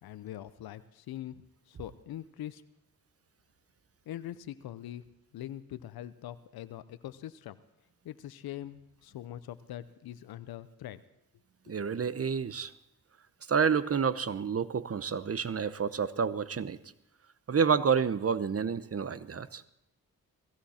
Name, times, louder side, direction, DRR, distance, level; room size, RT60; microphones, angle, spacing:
voice 1, 0.0-2.6 4.1-5.0 5.3-7.6 8.0-11.0, left 12 dB, 80° left, 14 dB, 0.7 m, -43 dB
voice 2, 11.7-12.7 13.5-16.8 17.5-19.6, right 6 dB, 40° right, 16 dB, 0.9 m, -29 dB
17.0 x 15.5 x 4.3 m, 0.85 s
cardioid pair, 55°, 37 cm